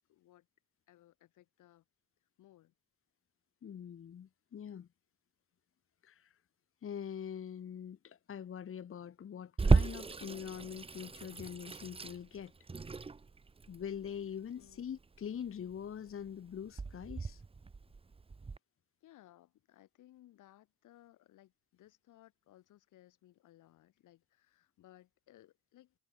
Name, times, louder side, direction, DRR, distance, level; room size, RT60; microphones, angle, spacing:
voice 1, 0.1-0.5 0.9-1.8 2.4-2.7 14.5-14.8 19.0-25.9, left 14 dB, 85° left, 4.7 m, -62 dB
voice 2, 3.6-4.9 6.0-6.4 6.8-12.5 13.7-17.4, left 8 dB, 45° left, 1.3 m, -44 dB
Water tap faucet / Sink (filling or washing), 9.6-18.6, right 4 dB, 20° right, 0.8 m, -34 dB
cardioid pair, 90°, 30 cm